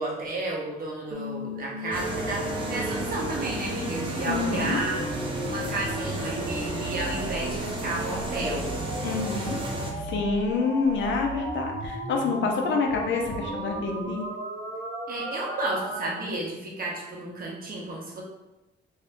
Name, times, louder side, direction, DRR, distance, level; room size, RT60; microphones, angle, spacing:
voice 1, 0.0-5.0 5.4-8.7 15.1-18.2, right 2 dB, 45° right, -3 dB, 1.0 m, -32 dB
sound 1, 1.1-16.1, right 1 dB, 80° right, 0.8 m, -35 dB
sound 2, 1.9-9.9, right 1 dB, 25° right, 0.8 m, -33 dB
voice 2, 4.3-4.8 9.0-9.6 10.0-14.2, left 4 dB, 70° left, 1 dB, 0.6 m, -27 dB
2.7 x 2.6 x 3.4 m, 0.97 s
cardioid pair, 90°, 20 cm